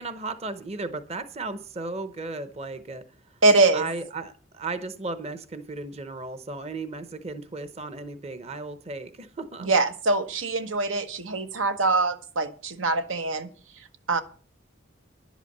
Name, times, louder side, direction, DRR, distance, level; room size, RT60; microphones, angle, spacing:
voice 1, 0.0-3.0 3.7-9.7, right 3 dB, 30° right, 0.8 m, -35 dB
voice 2, 3.4-3.9 9.6-13.5 14.1-14.2, right 3 dB, 85° right, 1.1 m, -23 dB
11.0 x 8.2 x 6.6 m
head